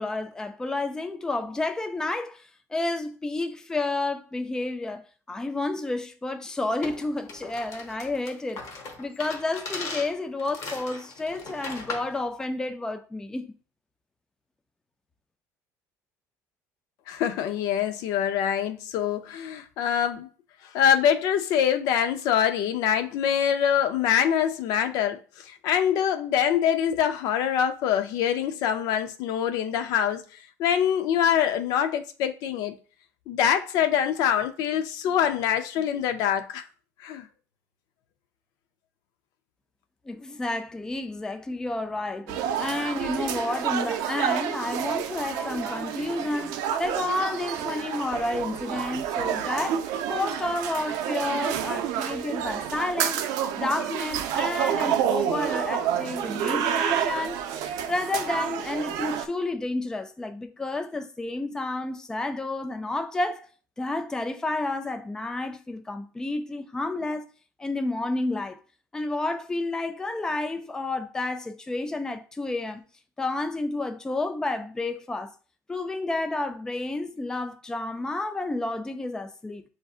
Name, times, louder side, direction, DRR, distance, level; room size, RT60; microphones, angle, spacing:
voice 1, 0.0-13.5 40.1-53.2 53.6-63.5 63.8-67.3 67.6-68.6 68.9-72.8 73.2-75.3 75.7-79.6, left 2 dB, 10° left, 0.3 m, -30 dB
sound 1, 6.8-12.2, left 3 dB, 55° left, 1.0 m, -38 dB
voice 2, 17.1-20.3 20.7-30.2 30.6-32.7 33.3-36.6 37.0-37.3, left 9 dB, 75° left, 0.5 m, -24 dB
sound 2, 42.3-59.3, right 9 dB, 80° right, 0.5 m, -29 dB
7.1 x 2.6 x 2.4 m
cardioid pair, 130°, 6 cm